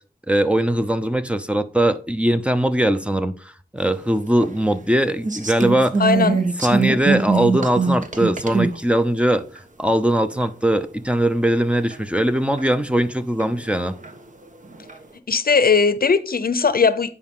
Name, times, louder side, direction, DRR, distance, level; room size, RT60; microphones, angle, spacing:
voice 1, 0.3-6.0 6.6-9.4 9.8-14.0, right 1 dB, 5° right, 0.7 m, -20 dB
sound 1, 4.4-4.5 5.2-8.8 9.6-9.7 10.4-10.5 11.1-11.2 11.9-12.0 12.6-12.7 13.4-14.1 14.6-15.0, right 4 dB, 50° right, 1.2 m, -22 dB
voice 2, 6.0-6.4 15.3-17.1, left 5 dB, 60° left, 0.7 m, -18 dB
9.9 x 4.9 x 3.7 m
wide cardioid pair, 85°, 17 cm